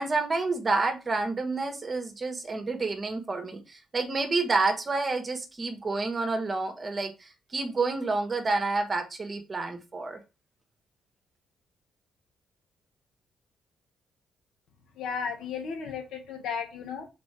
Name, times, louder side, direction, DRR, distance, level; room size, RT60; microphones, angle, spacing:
voice 1, 0.0-10.2, right 3 dB, 30° right, 5 dB, 1.4 m, -29 dB
voice 2, 14.9-17.1, left 6 dB, 80° left, 3 dB, 1.6 m, -34 dB
6.0 x 4.6 x 3.4 m, 0.27 s
cardioid pair, 90°, 0 cm